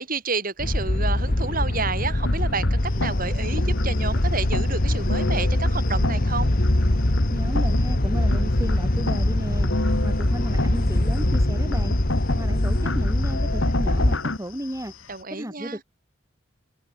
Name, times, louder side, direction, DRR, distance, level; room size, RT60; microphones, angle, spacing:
voice 1, 0.0-6.5 15.1-15.8, right 4 dB, 45° right, 5.2 m, -30 dB
sound 1, 0.6-14.2, left 1 dB, 45° left, 1.6 m, -23 dB
sound 2, 2.3-14.4, left 1 dB, 65° left, 2.4 m, -28 dB
sound 3, 2.8-15.2, left 8 dB, 90° left, 6.3 m, -47 dB
voice 2, 7.3-9.7 10.0-12.0 12.3-14.9 15.3-15.8, equal, 15° right, 2.2 m, -34 dB
head